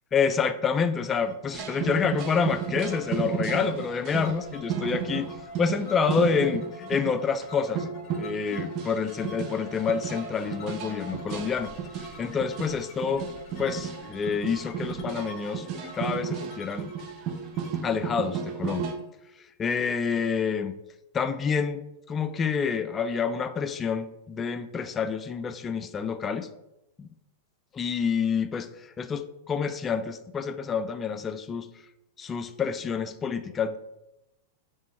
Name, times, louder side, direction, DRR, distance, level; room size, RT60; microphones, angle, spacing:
voice 1, 0.1-5.3 5.6-7.9 8.1-11.7 12.2-13.3 13.6-15.7 15.9-16.9 17.8-18.9 19.6-20.7 21.1-21.8 22.1-26.5 27.0-27.1 27.7-28.7 29.0-31.7 32.2-33.8, left 6 dB, 25° left, 11 dB, 0.3 m, -28 dB
sound 1, 1.3-19.0, left 1 dB, 45° left, 0.8 m, -45 dB
sound 2, 1.5-7.2 7.4-7.5 7.7-19.0, right 7 dB, 45° right, 0.6 m, -33 dB
3.5 x 2.9 x 4.3 m, 0.91 s
hypercardioid pair, 110°, 0 cm